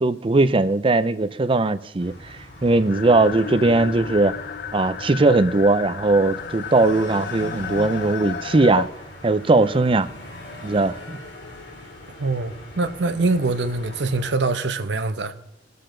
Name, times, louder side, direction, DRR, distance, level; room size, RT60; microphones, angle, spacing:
voice 1, 0.0-4.3 4.7-8.9 9.2-10.1 10.6-11.2, right 2 dB, 30° right, 0.5 m, -19 dB
sound 1, 2.0-14.3, left 1 dB, 80° left, 3.1 m, -40 dB
sound 2, 2.9-8.9, left 7 dB, 60° left, 0.4 m, -33 dB
voice 2, 12.2-15.3, right 3 dB, 80° right, 0.8 m, -24 dB
20.0 x 6.7 x 3.9 m
head